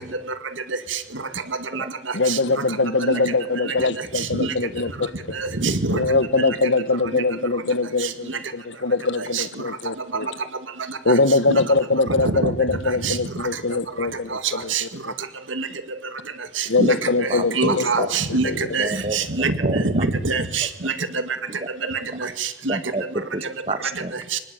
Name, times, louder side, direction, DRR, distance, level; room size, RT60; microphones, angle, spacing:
voice 1, 2.1-5.4 5.9-10.3 11.0-15.1 16.7-18.6, left 3 dB, 70° left, 1.2 m, -22 dB
voice 2, 5.6-6.0 9.3-9.4 12.2-12.5 13.0-13.1 14.7-14.8 15.6-15.7 16.8-16.9 17.2-17.3 17.6-20.9 22.7-22.8 24.3-24.4, right 3 dB, 80° right, 2.1 m, -23 dB
voice 3, 17.3-18.1 18.4-20.1 21.6-21.7 22.7-24.1, right 2 dB, 30° right, 1.4 m, -30 dB
24.5 x 20.0 x 9.1 m
head